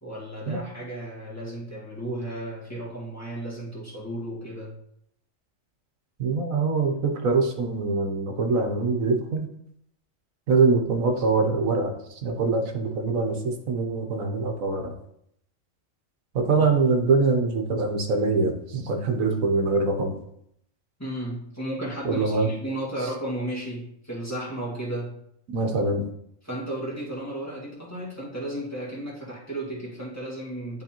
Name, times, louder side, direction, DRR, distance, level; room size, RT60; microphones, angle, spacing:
voice 1, 0.0-4.7 16.6-16.7 21.0-25.2 26.4-30.8, right 1 dB, 10° left, -6 dB, 1.7 m, -34 dB
voice 2, 6.2-9.5 10.5-14.9 16.3-20.1 22.0-22.5 25.5-26.0, right 3 dB, 85° right, 4 dB, 1.3 m, -24 dB
10.5 x 3.7 x 2.9 m, 0.74 s
omnidirectional pair, 1.4 m